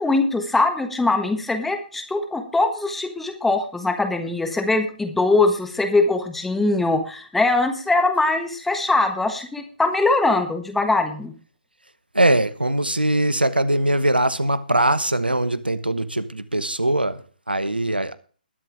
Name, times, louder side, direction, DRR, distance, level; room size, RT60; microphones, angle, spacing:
voice 1, 0.0-11.3, left 2 dB, 5° left, 1.4 m, -22 dB
voice 2, 12.1-18.1, right 1 dB, 85° right, 1.0 m, -21 dB
21.0 x 7.5 x 3.5 m
figure-of-eight pair, 135°, 5 cm